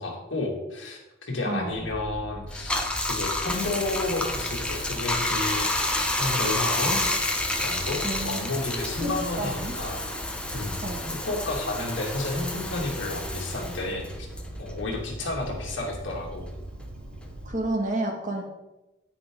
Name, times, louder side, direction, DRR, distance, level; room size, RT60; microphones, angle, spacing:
voice 1, 0.0-5.8 6.2-7.0 7.6-10.0 10.5-10.7 11.1-14.3 14.6-16.4, left 2 dB, 75° left, -1 dB, 2.5 m, -31 dB
voice 2, 1.4-1.8 8.0-8.4 9.0-9.1 9.4-9.7 10.8-11.1 17.5-18.4, right 2 dB, 40° right, 1 dB, 1.9 m, -30 dB
sound 1, 1.7-17.6, right 1 dB, 85° right, 1.2 m, -41 dB
Bathtub (filling or washing), 2.5-15.3 15.6-17.5, left 1 dB, 5° left, 0.9 m, -30 dB
9.9 x 9.4 x 3.8 m, 0.97 s
head